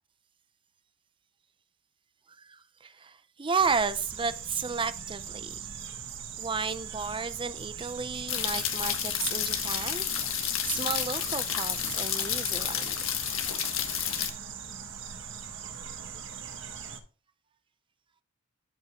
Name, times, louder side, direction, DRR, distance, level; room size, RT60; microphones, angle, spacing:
voice 1, 2.4-5.7 6.4-10.1 10.7-12.9, right 5 dB, 25° right, 0.7 m, -32 dB
sound 1, 3.6-17.0, right 7 dB, 60° right, 1.7 m, -41 dB
sound 2, 8.3-14.3, left 10 dB, 70° left, 1.5 m, -30 dB
13.5 x 5.5 x 3.7 m
head